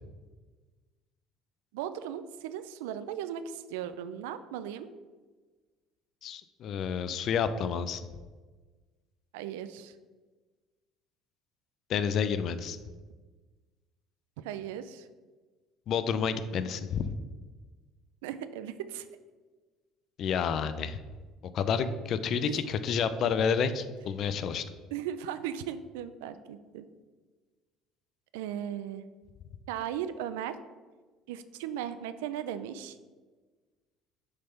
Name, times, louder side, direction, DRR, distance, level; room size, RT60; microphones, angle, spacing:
voice 1, 1.7-4.9 9.3-9.9 14.4-15.1 18.2-19.1 22.4-22.6 24.9-26.9 28.3-29.0 29.7-30.6 31.3-33.0, right 10 dB, 85° right, 12 dB, 0.4 m, -37 dB
voice 2, 6.2-8.0 11.9-12.8 15.9-17.1 20.2-21.0 21.5-24.6, left 6 dB, 55° left, 12 dB, 0.5 m, -29 dB
6.6 x 3.5 x 5.6 m, 1.3 s
supercardioid pair, 80°, 0 cm